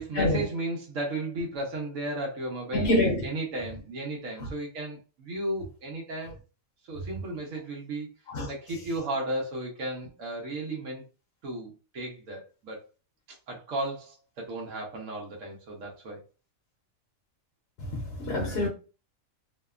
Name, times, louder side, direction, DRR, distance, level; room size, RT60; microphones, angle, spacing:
voice 1, 0.0-6.3 6.9-8.1 8.5-11.0 11.4-12.8 13.5-16.2, right 2 dB, 75° right, 1.1 m, -34 dB
voice 2, 2.7-3.2 4.4-4.5 8.3-8.5 17.9-18.7, left 1 dB, 55° left, 0.8 m, -26 dB
2.8 x 2.1 x 2.3 m
omnidirectional pair, 1.4 m